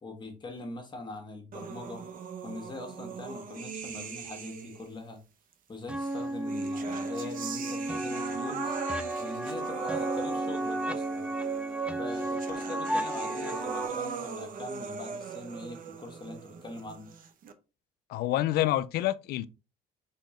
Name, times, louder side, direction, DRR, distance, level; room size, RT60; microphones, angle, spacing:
voice 1, 0.0-2.0 2.4-5.2 5.7-8.7 9.2-11.3 12.0-17.1, left 2 dB, 25° left, 1.3 m, -42 dB
sound 1, 1.5-5.0 6.0-17.5, right 6 dB, 55° right, 0.7 m, -40 dB
sound 2, 5.9-13.9, right 2 dB, 5° right, 0.4 m, -33 dB
voice 2, 18.1-19.5, left 14 dB, 70° left, 0.4 m, -27 dB
4.3 x 3.7 x 3.1 m
cardioid pair, 110°, 17 cm